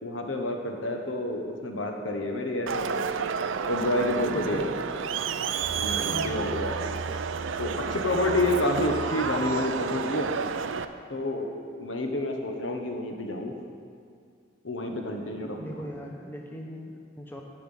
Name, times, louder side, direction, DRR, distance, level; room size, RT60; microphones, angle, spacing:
voice 1, 0.0-3.1 3.6-4.7 5.7-6.7 7.6-10.3 11.1-11.5 11.8-13.5 14.6-15.8, left 1 dB, 85° left, 2 dB, 1.3 m, -29 dB
Crowd, 2.7-10.9, right 6 dB, 85° right, 0.5 m, -30 dB
voice 2, 4.3-4.8 6.0-6.4 15.6-17.4, equal, 10° left, 0 dB, 0.9 m, -39 dB
10.5 x 6.0 x 8.3 m, 2.3 s
head